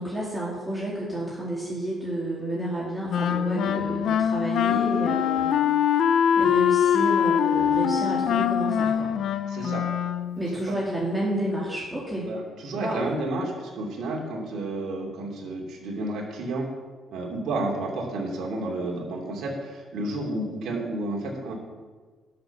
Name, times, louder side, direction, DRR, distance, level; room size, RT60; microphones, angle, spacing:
voice 1, 0.0-5.5 6.4-9.1 10.4-12.3 12.7-13.1, right 1 dB, 15° right, -5 dB, 2.8 m, -30 dB
Wind instrument woodwind instrument, 3.1-10.5, left 8 dB, 75° left, 0.6 m, -23 dB
voice 2, 9.5-9.8 10.7-10.8 12.2-16.7 17.1-21.5, right 2 dB, 75° right, -1 dB, 2.7 m, -31 dB
11.0 x 6.7 x 7.0 m, 1.5 s
cardioid pair, 90°, 0 cm